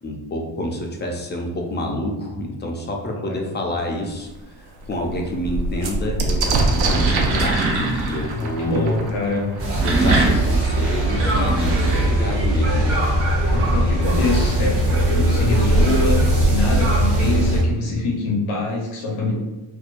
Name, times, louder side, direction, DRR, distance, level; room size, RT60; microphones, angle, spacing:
voice 1, 0.0-9.1 9.8-12.9, left 1 dB, 25° left, 1 dB, 0.4 m, -28 dB
voice 2, 3.1-3.5 8.2-9.5 13.5-19.3, left 3 dB, 90° left, -1 dB, 1.0 m, -25 dB
sound 1, 3.8-3.9 4.3-4.4 4.7-10.2 11.2-11.3 11.6-12.2, right 2 dB, 55° right, 0.6 m, -25 dB
sound 2, 6.7-8.3 9.5-12.6, right 2 dB, 80° right, 1.3 m, -24 dB
sound 3, 9.6-17.6, right 1 dB, 30° right, 0.9 m, -19 dB
4.4 x 2.2 x 2.5 m, 1.1 s
cardioid pair, 135°, 48 cm